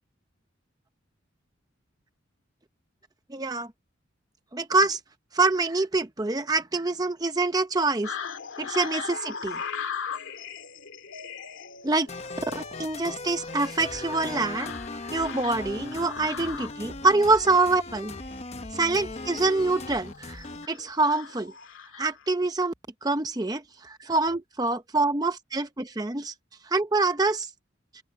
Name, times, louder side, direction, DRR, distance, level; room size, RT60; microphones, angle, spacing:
voice 1, 3.3-3.7 4.5-5.0 5.3-8.1 8.6-9.6 11.8-12.1 12.5-18.1 18.7-21.5 22.0-22.7 23.0-26.3 26.7-27.5, right 3 dB, 20° right, 0.7 m, -25 dB
sound 1, 8.0-22.3, left 6 dB, 85° left, 2.1 m, -39 dB
sound 2, 12.1-20.7, left 2 dB, 35° left, 1.0 m, -38 dB
open air
head